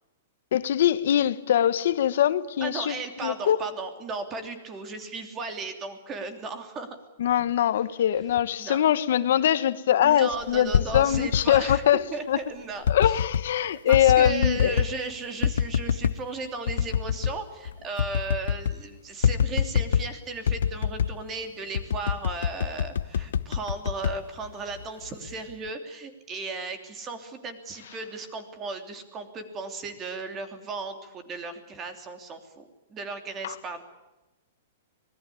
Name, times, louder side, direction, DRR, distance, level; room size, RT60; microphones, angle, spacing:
voice 1, 0.5-3.6 7.2-12.4 12.9-14.8 33.4-33.5, left 10 dB, 60° left, 1.4 m, -23 dB
voice 2, 2.6-7.0 8.5-8.8 10.0-11.8 12.1-13.2 13.9-33.8, right 3 dB, 15° right, 3.0 m, -36 dB
sound 1, 10.5-11.8 12.8-13.5 13.9-15.0 15.4-16.2 16.7-17.4 17.7-17.8 18.0-18.8 19.2-20.1 20.5-21.2 21.7-24.8 25.3-25.7, left 8 dB, 75° left, 0.9 m, -26 dB
25.5 x 20.5 x 8.6 m
hypercardioid pair, 170°, 0 cm